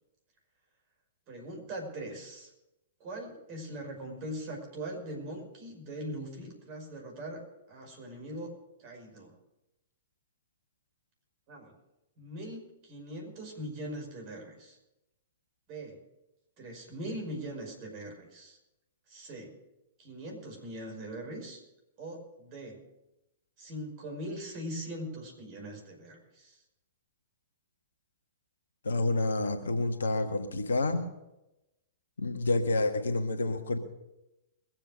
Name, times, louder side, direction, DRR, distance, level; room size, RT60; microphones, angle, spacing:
voice 1, 1.3-2.5 3.0-7.4 7.7-8.5 8.8-9.3 11.5-11.7 12.2-14.8 15.7-16.0 16.6-18.6 19.1-19.5 20.0-21.6 22.0-22.8 23.6-26.6, right 1 dB, 40° right, 1 dB, 5.4 m, -41 dB
voice 2, 28.8-31.1 32.2-33.8, left 2 dB, 70° left, 6 dB, 1.5 m, -28 dB
22.0 x 7.7 x 6.4 m, 0.94 s
figure-of-eight pair, 110°, 0 cm